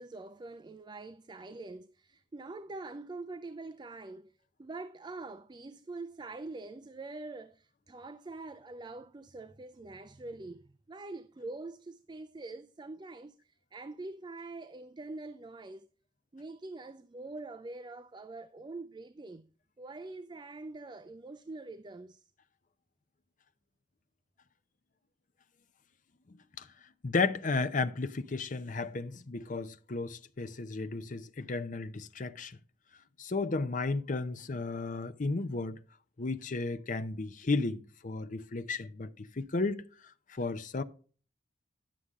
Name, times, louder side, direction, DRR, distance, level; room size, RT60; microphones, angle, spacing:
voice 1, 0.0-15.9 16.3-19.5 19.8-22.3, right 2 dB, 25° right, 0.4 m, -44 dB
voice 2, 27.0-32.6 33.2-35.8 36.2-39.8 40.3-40.8, left 3 dB, 45° left, 0.7 m, -33 dB
11.0 x 6.9 x 3.6 m
head